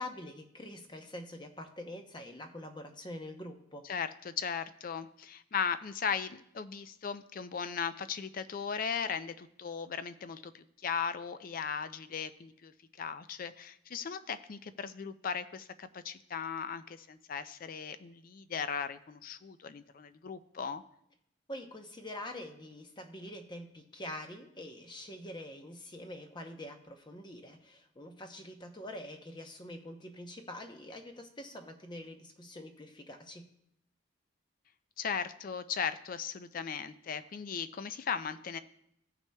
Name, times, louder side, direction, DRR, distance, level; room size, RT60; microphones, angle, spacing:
voice 1, 0.0-3.9 21.5-33.5, left 1 dB, 20° left, 5 dB, 0.7 m, -45 dB
voice 2, 3.8-20.8 35.0-38.6, left 6 dB, 45° left, 12 dB, 0.4 m, -37 dB
16.5 x 5.8 x 2.3 m, 0.76 s
head